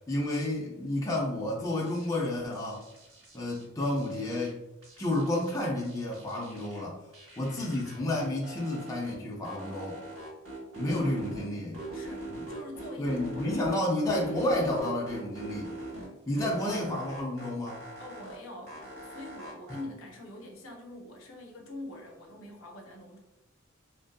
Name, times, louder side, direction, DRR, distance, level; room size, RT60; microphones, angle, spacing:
voice 1, 0.1-2.8 3.3-4.6 5.0-7.0 7.4-10.0 10.8-11.9 12.2-12.4 13.0-15.7 16.3-17.8, left 1 dB, 15° left, -4 dB, 0.4 m, -31 dB
sound 1, 1.7-2.2 2.5-4.5 4.8-6.8 7.1-9.1 9.4-11.5 11.7-13.8 14.1-16.1 16.4-18.4 18.7-19.8, right 1 dB, 85° right, 1.4 m, -42 dB
voice 2, 11.9-14.3 18.0-23.2, left 1 dB, 65° left, 1 dB, 0.5 m, -45 dB
2.5 x 2.4 x 2.2 m, 0.92 s
head